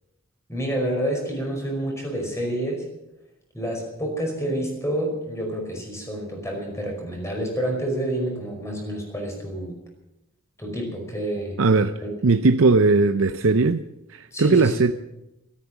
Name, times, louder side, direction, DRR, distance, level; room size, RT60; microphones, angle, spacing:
voice 1, 0.5-2.9 3.5-9.7 10.6-11.6 14.3-14.8, right 1 dB, 15° left, 5.2 m, -28 dB
voice 2, 11.6-11.9 12.2-13.8 14.1-14.9, right 3 dB, 65° right, 0.6 m, -18 dB
13.5 x 13.5 x 7.2 m
head